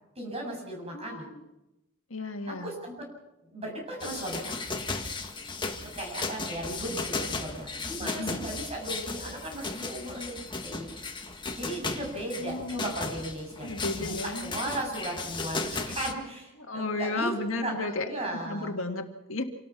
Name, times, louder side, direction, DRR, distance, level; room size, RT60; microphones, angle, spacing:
voice 1, 0.1-1.3 2.5-3.1 3.4-4.5 5.7-10.9 11.6-13.7 13.9-17.3 17.6-18.7, right 1 dB, 30° right, 0 dB, 7.8 m, -36 dB
voice 2, 0.9-1.4 2.1-2.7 8.0-8.4 12.4-12.9 13.6-14.5 16.6-18.1 18.5-19.4, left 2 dB, 70° left, 4 dB, 2.1 m, -33 dB
sound 1, 4.0-16.1, left 3 dB, 25° left, 1.8 m, -36 dB
27.5 x 19.0 x 6.0 m, 0.96 s
head